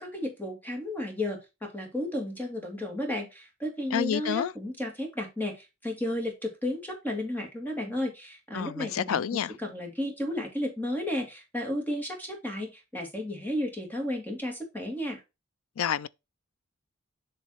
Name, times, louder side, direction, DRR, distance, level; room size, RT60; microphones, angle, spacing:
voice 1, 0.0-15.2, left 1 dB, 10° left, 2.1 m, -33 dB
voice 2, 3.9-4.5 8.5-9.5 15.8-16.1, left 8 dB, 75° left, 0.4 m, -29 dB
7.3 x 3.3 x 5.6 m
head